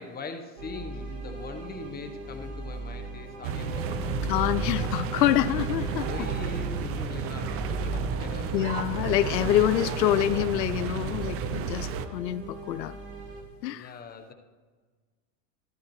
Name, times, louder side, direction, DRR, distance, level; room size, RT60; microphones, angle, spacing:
voice 1, 0.0-4.1 4.8-4.9 6.1-8.7 13.7-14.3, left 4 dB, 20° left, 5 dB, 1.0 m, -41 dB
sound 1, 0.6-13.4, right 1 dB, 55° right, 3.0 m, -38 dB
sound 2, 3.4-12.1, right 6 dB, 30° right, 0.6 m, -32 dB
voice 2, 4.3-6.1 8.5-13.0 13.6-13.9, left 13 dB, 90° left, 15 dB, 0.5 m, -26 dB
13.5 x 13.0 x 3.1 m, 1.4 s
hypercardioid pair, 115°, 48 cm